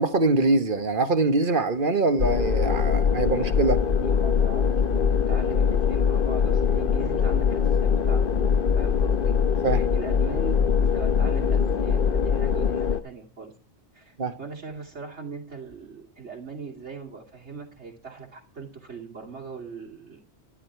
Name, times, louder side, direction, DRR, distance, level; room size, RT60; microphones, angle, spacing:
voice 1, 0.0-3.8 9.6-9.9 14.2-14.4, right 3 dB, 50° right, 1.4 m, -23 dB
sound 1, 2.2-13.0, left 7 dB, 55° left, 1.0 m, -22 dB
voice 2, 4.0-4.6 5.3-8.2 8.7-9.3 9.9-10.5 10.8-13.5 13.9-20.2, right 5 dB, 90° right, 3.1 m, -40 dB
12.0 x 11.5 x 4.6 m
omnidirectional pair, 1.1 m